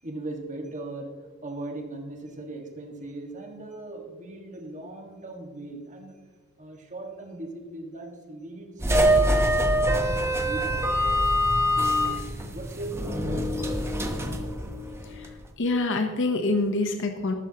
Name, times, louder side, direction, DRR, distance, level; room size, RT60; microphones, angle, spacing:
voice 1, 0.0-6.2 6.6-10.9 11.8-13.7, right 2 dB, 35° right, 3 dB, 1.6 m, -39 dB
sound 1, 8.8-15.3, equal, 10° right, 1.0 m, -24 dB
voice 2, 15.6-17.3, left 2 dB, 60° left, 6 dB, 0.9 m, -26 dB
13.5 x 12.5 x 2.9 m, 1.5 s
head